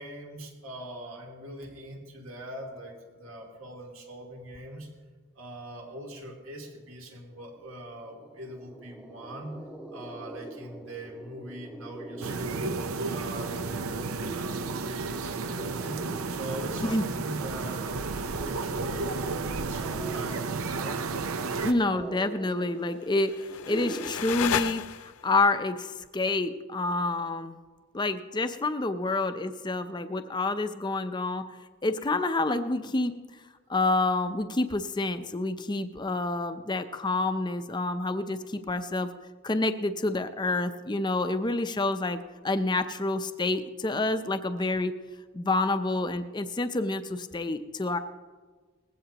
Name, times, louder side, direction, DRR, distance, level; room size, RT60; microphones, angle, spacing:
voice 1, 0.0-4.9 5.3-9.6 9.9-12.7 13.1-21.0, right 1 dB, 75° right, 0 dB, 2.8 m, -42 dB
sound 1, 7.5-7.6 7.9-24.1, right 2 dB, 5° right, 1.0 m, -44 dB
sound 2, 12.2-21.7, right 4 dB, 90° right, 0.7 m, -32 dB
voice 2, 21.6-27.6 27.9-31.6 31.8-33.1 33.7-39.1 39.4-44.9 45.3-48.0, left 2 dB, 20° left, 9 dB, 0.5 m, -28 dB
sound 3, 23.0-25.4, left 9 dB, 85° left, 0.4 m, -33 dB
20.0 x 16.0 x 2.9 m, 1.4 s
head